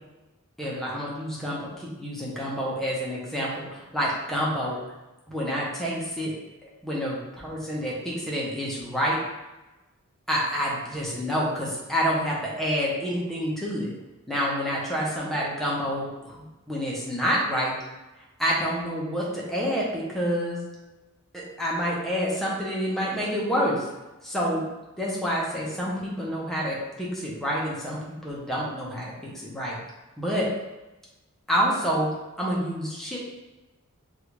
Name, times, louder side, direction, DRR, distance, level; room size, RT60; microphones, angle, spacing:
voice 1, 0.6-4.9 5.3-6.3 6.6-9.2 10.3-13.9 14.3-17.7 18.4-20.6 21.3-23.9 24.2-24.7 25.0-29.8 30.2-30.5 31.5-32.1 32.4-33.2, equal, ahead, -5 dB, 0.6 m, -28 dB
3.2 x 2.4 x 3.0 m, 1.0 s
head